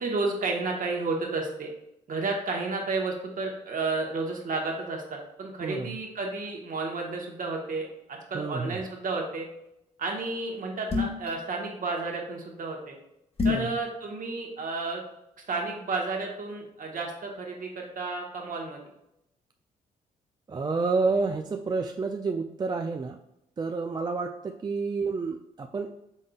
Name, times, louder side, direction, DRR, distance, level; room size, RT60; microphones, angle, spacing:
voice 1, 0.0-1.7 2.1-9.5 10.0-13.0 13.4-15.0 15.5-18.8, right 3 dB, 55° right, 1 dB, 1.2 m, -32 dB
voice 2, 5.6-6.0 8.3-8.8 13.5-13.7 20.5-23.2 23.6-26.1, right 4 dB, 25° right, 5 dB, 0.3 m, -29 dB
sound 1, 10.9-11.3 13.4-13.7, left 4 dB, 35° left, 1.3 m, -26 dB
5.3 x 3.7 x 2.3 m, 0.83 s
supercardioid pair, 55°, 17 cm